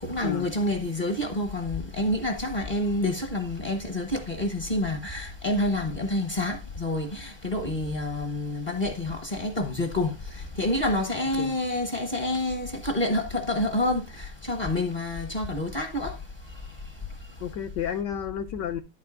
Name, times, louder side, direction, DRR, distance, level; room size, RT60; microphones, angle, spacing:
voice 1, 0.0-10.1 10.6-16.1, left 1 dB, 35° left, 0.7 m, -28 dB
voice 2, 17.4-18.8, left 9 dB, 75° left, 1.1 m, -31 dB
10.5 x 8.8 x 2.4 m
omnidirectional pair, 2.3 m